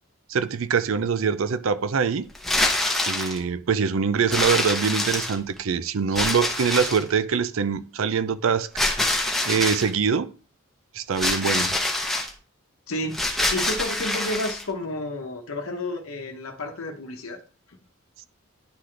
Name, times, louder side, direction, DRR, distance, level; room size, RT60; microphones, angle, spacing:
voice 1, 0.3-2.3 3.1-8.7 9.4-10.3 10.9-11.7, right 6 dB, 75° right, 0.5 m, -24 dB
sound 1, 2.4-3.4 4.3-5.6 6.2-7.1 8.8-9.9 11.2-12.3 13.1-14.6, left 1 dB, ahead, 0.9 m, -25 dB
voice 2, 13.5-17.4, left 1 dB, 90° left, 0.9 m, -31 dB
10.0 x 3.9 x 3.2 m
head